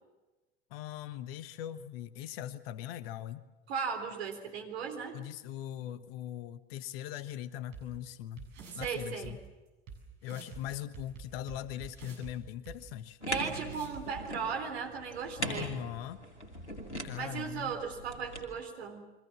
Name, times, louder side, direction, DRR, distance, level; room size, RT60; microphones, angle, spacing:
voice 1, 0.7-3.5 5.1-8.5 8.7-9.4 10.2-13.2 15.4-16.2 17.0-17.8, left 11 dB, 60° left, 15 dB, 1.4 m, -40 dB
voice 2, 3.7-5.2 8.7-9.4 13.3-15.8 17.2-19.0, right 6 dB, 70° right, 4 dB, 3.7 m, -37 dB
sound 1, 7.7-7.8 8.4-8.9 9.2-9.3 9.9-10.0 10.2-10.6 10.9-12.3 12.7-12.8 13.3-13.4 13.7-14.0, right 6 dB, 50° right, 7.7 m, -46 dB
sound 2, 13.2-18.5, equal, 90° left, 2.9 m, -41 dB
30.0 x 23.5 x 7.4 m, 1.1 s
figure-of-eight pair, 65°, 33 cm